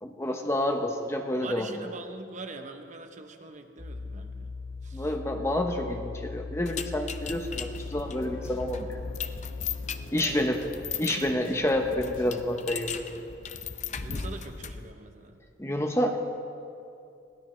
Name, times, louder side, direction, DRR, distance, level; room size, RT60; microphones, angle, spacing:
voice 1, 0.0-1.7 4.9-9.0 10.1-10.6 11.0-13.0 15.6-16.2, left 1 dB, 15° left, 4 dB, 0.9 m, -28 dB
voice 2, 1.4-4.5 4.8-5.1 10.1-10.6 14.0-15.4, right 3 dB, 40° right, 5 dB, 0.9 m, -43 dB
sound 1, 3.8-10.1, left 4 dB, 60° left, 1.5 m, -39 dB
sound 2, 6.7-14.9, left 6 dB, 35° left, 0.5 m, -38 dB
sound 3, 7.3-12.7, left 1 dB, 80° left, 1.2 m, -48 dB
22.5 x 16.5 x 3.2 m, 2.6 s
head